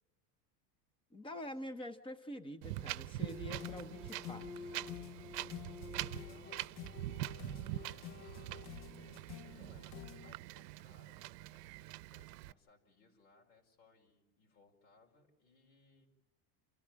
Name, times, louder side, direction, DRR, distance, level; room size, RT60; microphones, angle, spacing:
voice 1, 1.1-4.7, left 1 dB, 10° left, 11 dB, 0.7 m, -46 dB
Wind, 2.6-12.5, right 16 dB, 70° right, 0.8 m, -44 dB
sound 1, 3.2-10.3, left 8 dB, 55° left, 1.0 m, -49 dB
voice 2, 5.8-9.1 9.5-9.9 10.2-16.1, left 3 dB, 75° left, 0 dB, 5.3 m, -67 dB
29.5 x 14.0 x 7.5 m, 1.1 s
supercardioid pair, 145°, 49 cm